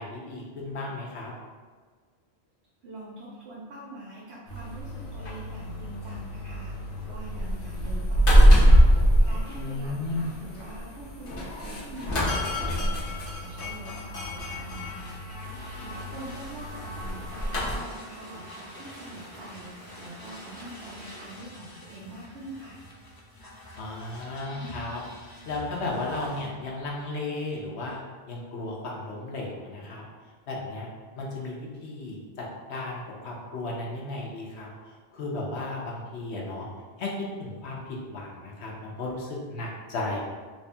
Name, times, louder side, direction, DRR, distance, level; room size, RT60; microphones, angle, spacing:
voice 1, 0.0-1.3 9.6-10.3 23.8-28.0 28.3-30.0 30.5-30.9 31.2-34.7 35.1-36.7 37.0-40.2, left 2 dB, 90° left, -2 dB, 1.1 m, -34 dB
voice 2, 2.8-8.7 9.2-15.2 15.8-22.8, right 2 dB, 80° right, -6 dB, 1.0 m, -44 dB
sound 1, 4.5-17.7, equal, 60° left, 1.2 m, -24 dB
sound 2, 14.4-26.5, left 1 dB, 35° left, 0.4 m, -46 dB
sound 3, 15.4-21.4, right 1 dB, 35° right, 0.9 m, -49 dB
3.3 x 2.7 x 3.4 m, 1.5 s
omnidirectional pair, 1.1 m